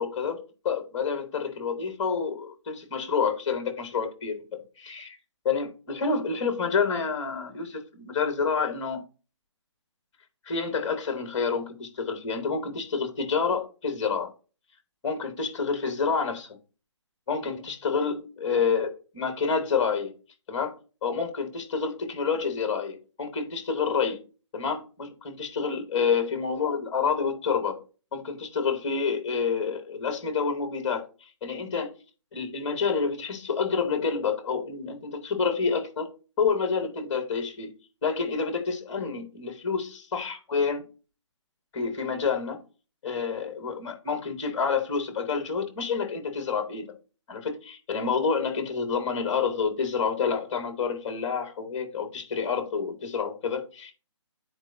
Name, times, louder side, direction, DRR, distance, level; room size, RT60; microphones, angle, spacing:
voice 1, 0.0-5.2 5.4-9.0 10.4-14.3 15.0-16.5 17.3-18.9 19.1-20.1 20.5-24.2 24.5-27.8 28.1-31.9 32.3-36.1 36.4-37.7 38.0-40.8 41.7-42.6 43.0-46.9 47.3-53.9, left 5 dB, 15° left, 1.1 m, -28 dB
8.9 x 4.3 x 2.6 m
hypercardioid pair, 175°, 16 cm